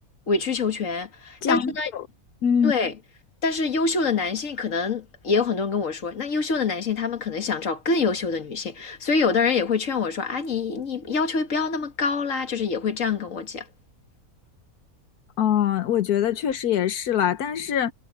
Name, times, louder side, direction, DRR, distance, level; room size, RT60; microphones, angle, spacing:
voice 1, 0.3-1.9 2.6-2.9 3.4-13.7, left 4 dB, 60° left, 2.1 m, -25 dB
voice 2, 1.4-2.0 2.4-2.7 15.4-17.9, left 9 dB, 90° left, 1.5 m, -23 dB
omnidirectional pair, 1.6 m